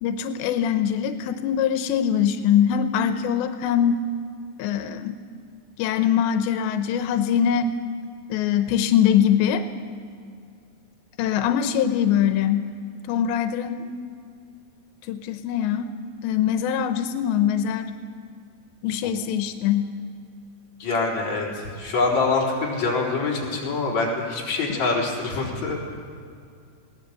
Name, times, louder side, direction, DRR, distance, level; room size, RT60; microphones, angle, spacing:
voice 1, 0.0-4.1 4.6-5.2 5.8-7.7 8.3-9.6 11.2-12.7 13.1-13.8 15.1-15.9 16.2-17.9 18.8-20.0, left 9 dB, 90° left, 8 dB, 3.1 m, -22 dB
voice 2, 20.8-25.8, left 3 dB, 40° left, -3 dB, 5.1 m, -25 dB
21.5 x 18.0 x 8.2 m, 2.3 s
omnidirectional pair, 5.0 m